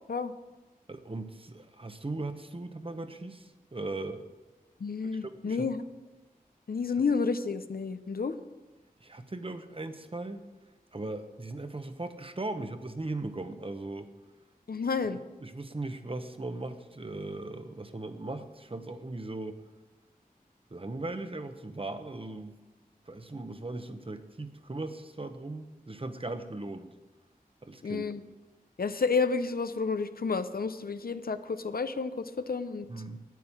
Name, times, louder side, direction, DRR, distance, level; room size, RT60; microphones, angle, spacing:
voice 1, 0.9-4.2 5.2-5.7 9.0-10.4 10.9-14.1 15.4-19.6 20.7-22.6 23.1-26.9 27.6-28.0 32.9-33.2, right 2 dB, 35° right, 8 dB, 1.0 m, -38 dB
voice 2, 4.8-5.8 6.7-8.4 14.7-15.2 27.8-28.2 28.8-32.9, left 4 dB, 75° left, 10 dB, 0.7 m, -30 dB
9.7 x 9.4 x 7.2 m, 1.2 s
wide cardioid pair, 65°, 15 cm